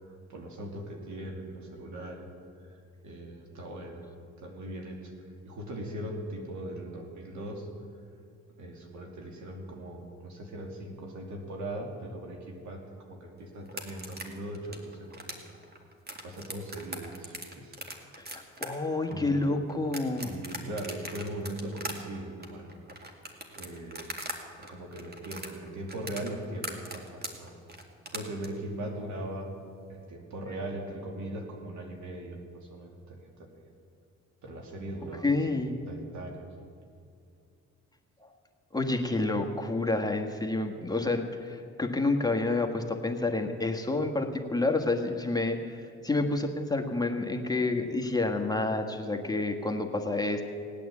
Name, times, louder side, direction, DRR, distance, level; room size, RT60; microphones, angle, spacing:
voice 1, 0.0-2.3 2.6-4.0 4.4-5.1 5.4-7.7 8.6-15.4 16.2-17.7 19.1-19.4 20.2-22.7 23.5-24.1 24.6-27.5 28.1-29.5 29.9-33.6 34.4-36.5, right 1 dB, 70° right, 2 dB, 2.8 m, -40 dB
sound 1, 13.7-24.4 24.6-28.5, right 2 dB, 30° right, 2.2 m, -40 dB
voice 2, 18.2-20.3 35.2-35.7 38.7-45.8 46.0-50.4, left 2 dB, 10° left, 3 dB, 1.4 m, -29 dB
18.0 x 9.2 x 8.4 m, 2.4 s
cardioid pair, 90°, 30 cm